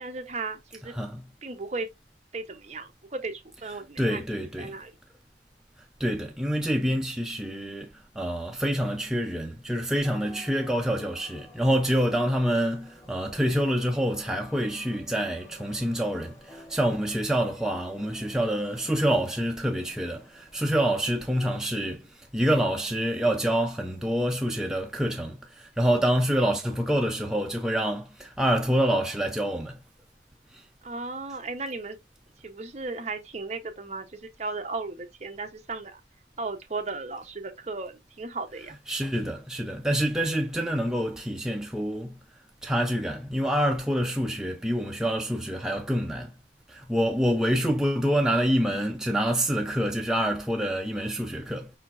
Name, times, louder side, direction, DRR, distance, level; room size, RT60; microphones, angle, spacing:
voice 1, 0.0-0.9 1.4-1.9 2.3-4.2 4.6-4.9 30.8-32.0 32.4-36.0 36.4-38.8, right 3 dB, 40° right, 0.8 m, -35 dB
voice 2, 4.0-4.8 6.0-29.8 30.5-30.6 38.9-42.2 42.6-46.3 46.7-51.7, equal, 5° right, 0.5 m, -27 dB
sound 1, 10.0-21.7, left 1 dB, 15° left, 0.9 m, -52 dB
4.9 x 4.2 x 2.4 m
head